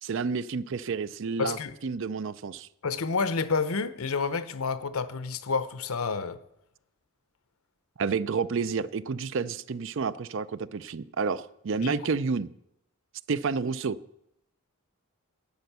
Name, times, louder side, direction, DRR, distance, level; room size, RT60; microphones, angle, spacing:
voice 1, 0.0-1.6 1.8-2.7 8.0-12.5 13.3-14.0, right 5 dB, 55° right, 0.5 m, -30 dB
voice 2, 1.4-1.7 2.8-6.4 11.8-12.0, left 4 dB, 75° left, 0.7 m, -29 dB
12.0 x 9.2 x 6.7 m
head